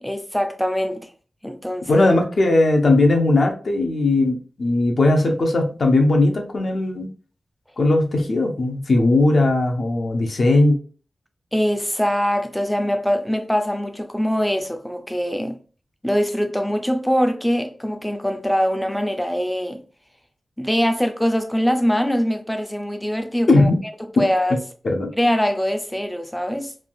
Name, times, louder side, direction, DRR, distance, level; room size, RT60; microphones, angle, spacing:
voice 1, 0.0-1.1 1.4-2.1 11.5-15.6 16.0-19.8 20.6-23.7 24.2-24.6 25.2-26.7, equal, 5° left, 0.4 m, -23 dB
voice 2, 1.9-7.1 7.8-10.8 23.5-23.8 24.8-25.1, left 2 dB, 55° left, 0.6 m, -18 dB
3.2 x 2.3 x 2.5 m
wide cardioid pair, 130°, 0 cm